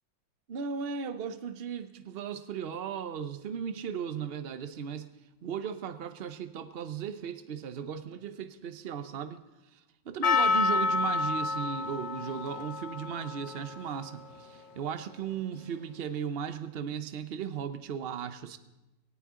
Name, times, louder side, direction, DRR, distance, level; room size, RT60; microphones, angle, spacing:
voice 1, 0.5-5.1 5.4-9.4 9.7-9.8 10.1-18.6, right 7 dB, 65° right, 0.6 m, -36 dB
Percussion, 10.2-15.2, left 4 dB, 70° left, 1.7 m, -30 dB
18.0 x 17.5 x 3.7 m
omnidirectional pair, 2.0 m